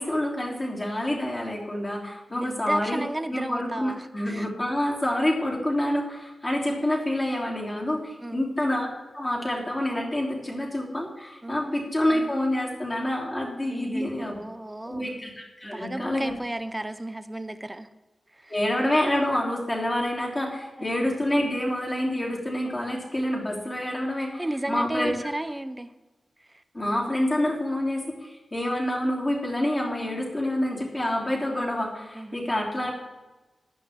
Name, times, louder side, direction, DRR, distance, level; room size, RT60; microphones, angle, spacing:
voice 1, 0.0-3.0 3.3-8.9 9.1-14.4 14.8-16.3 18.5-24.4 24.7-25.1 26.7-33.0, left 1 dB, 20° left, -2 dB, 3.2 m, -27 dB
voice 2, 2.3-4.5 8.2-8.4 11.4-11.8 13.7-15.1 15.6-17.9 18.3-18.5 20.8-20.9 24.4-25.9 26.4-26.6 32.1-32.4, right 1 dB, 10° right, 10 dB, 0.7 m, -34 dB
15.0 x 11.5 x 3.7 m, 1.1 s
wide cardioid pair, 160°, 0 cm